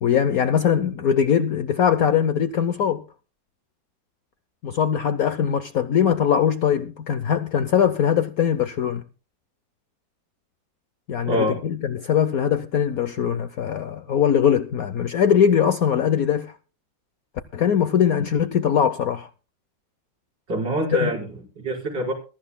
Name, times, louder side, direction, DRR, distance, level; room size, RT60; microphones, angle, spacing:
voice 1, 0.0-3.0 4.6-9.0 11.1-16.6 17.5-19.3 21.0-21.1, left 8 dB, 60° left, 1.1 m, -21 dB
voice 2, 11.2-11.6 20.5-22.1, equal, 75° right, 5.5 m, -25 dB
21.5 x 13.5 x 2.2 m
omnidirectional pair, 2.0 m